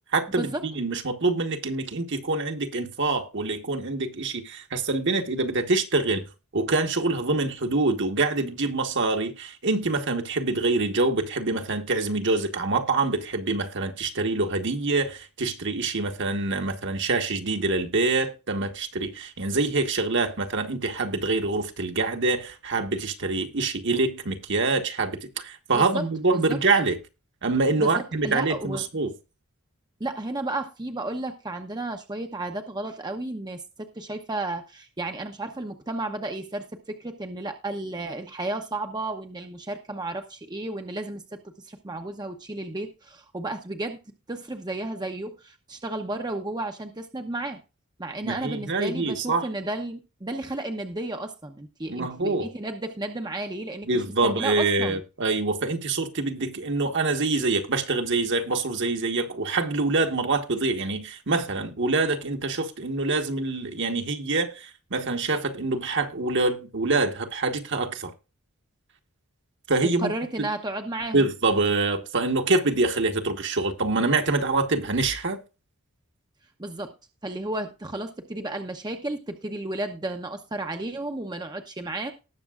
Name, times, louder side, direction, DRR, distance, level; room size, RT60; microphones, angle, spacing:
voice 1, 0.1-6.3 6.5-27.0 27.4-29.1 48.2-49.5 51.9-52.5 53.9-68.1 69.7-70.1 70.4-70.5 71.1-75.4, right 3 dB, 55° right, 1.4 m, -25 dB
voice 2, 27.8-28.8 30.0-44.0 44.3-47.6 48.0-55.0 69.8-71.3 76.6-76.9 77.2-82.1, right 2 dB, 20° right, 0.8 m, -33 dB
19.0 x 6.7 x 2.4 m
head